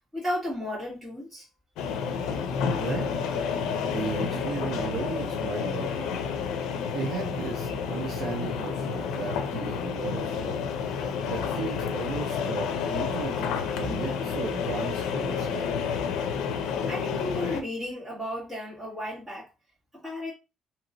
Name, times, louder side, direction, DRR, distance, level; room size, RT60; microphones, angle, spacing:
voice 1, 0.1-1.5 16.9-19.5 20.0-20.3, left 1 dB, 10° right, 1.9 m, -33 dB
sound 1, 1.8-17.6, left 6 dB, 90° left, 0.5 m, -30 dB
voice 2, 3.8-6.2 6.9-10.6 11.0-15.7, right 5 dB, 55° right, 0.7 m, -35 dB
2.9 x 2.8 x 2.6 m
cardioid pair, 170°, 0 cm